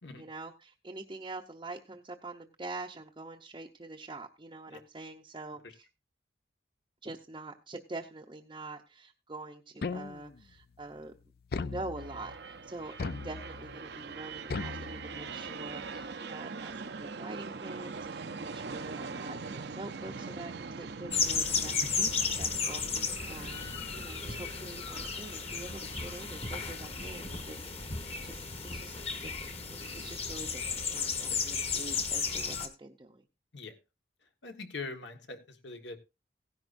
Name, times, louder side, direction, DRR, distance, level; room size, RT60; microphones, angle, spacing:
voice 1, 0.2-5.8 7.0-11.1 11.5-22.1 22.3-28.0 28.2-33.2, right 2 dB, 25° right, 0 dB, 0.7 m, -45 dB
sound 1, 9.8-10.5 11.5-12.4 13.0-13.8 14.5-15.5, left 4 dB, 55° left, 0.5 m, -38 dB
sound 2, 12.0-28.1, right 4 dB, 65° right, 0.6 m, -43 dB
sound 3, 21.1-32.7, left 5 dB, 35° left, 1.4 m, -34 dB
voice 2, 34.2-36.0, left 3 dB, 75° left, 6 dB, 1.6 m, -43 dB
16.5 x 10.5 x 2.6 m, 0.26 s
head